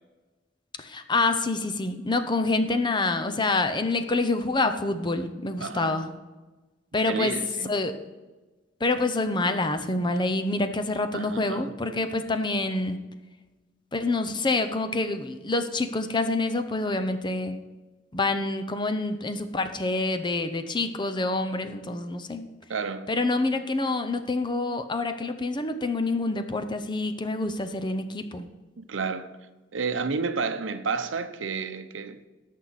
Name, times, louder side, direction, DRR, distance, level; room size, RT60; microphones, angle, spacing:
voice 1, 0.8-6.1 6.9-7.3 7.7-7.9 8.8-13.0 13.9-17.6 18.1-22.5 23.1-28.5, left 2 dB, 25° left, 0.7 m, -27 dB
voice 2, 5.6-6.0 7.1-7.7 11.1-11.7 22.7-23.1 28.8-29.3 29.7-32.3, right 5 dB, 85° right, 0.7 m, -31 dB
17.5 x 6.5 x 4.1 m
head